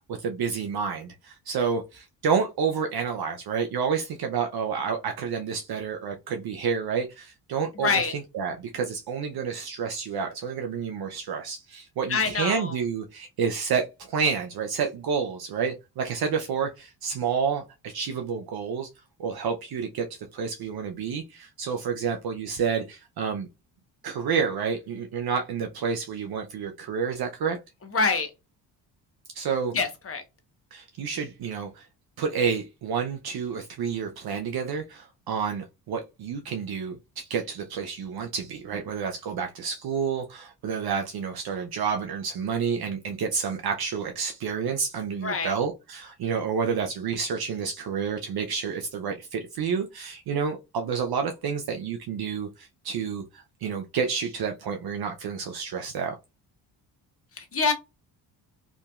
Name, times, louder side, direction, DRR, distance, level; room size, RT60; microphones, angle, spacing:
voice 1, 0.2-8.0 8.3-18.9 19.2-23.5 24.0-27.6 29.3-29.7 30.7-31.9 32.2-56.1, right 6 dB, 50° right, 0.6 m, -29 dB
voice 2, 7.7-8.1 12.1-12.8 27.8-28.3 29.7-30.2 45.2-45.5 57.3-57.7, left 4 dB, 25° left, 1.0 m, -26 dB
2.8 x 2.6 x 2.3 m
hypercardioid pair, 50°, 49 cm